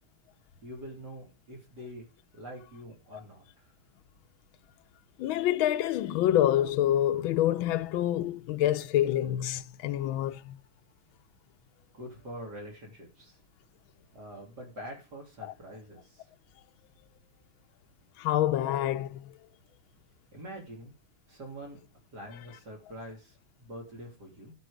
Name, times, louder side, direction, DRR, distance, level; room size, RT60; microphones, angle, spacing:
voice 1, 0.6-2.1 2.3-3.4 11.9-13.4 14.1-16.2 20.3-20.9 21.3-21.8 22.1-24.5, equal, 50° right, 3.9 m, -45 dB
voice 2, 5.2-10.5 15.4-15.5 18.2-19.3, left 12 dB, 70° left, 1.6 m, -27 dB
13.0 x 8.0 x 5.2 m
omnidirectional pair, 2.4 m